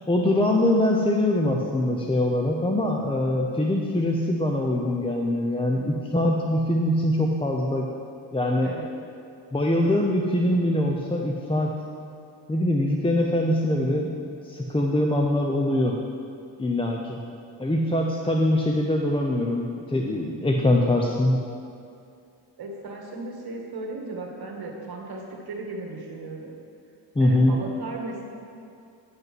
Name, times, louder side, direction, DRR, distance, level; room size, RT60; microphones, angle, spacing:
voice 1, 0.1-7.9 8.3-8.7 9.5-11.7 12.5-16.0 16.6-17.2 17.6-21.4 27.2-27.6, left 1 dB, 10° left, 0 dB, 0.6 m, -23 dB
voice 2, 22.6-26.5 27.2-28.3, right 3 dB, 55° right, 0 dB, 1.7 m, -36 dB
9.3 x 5.5 x 6.1 m, 2.5 s
cardioid pair, 95°, 46 cm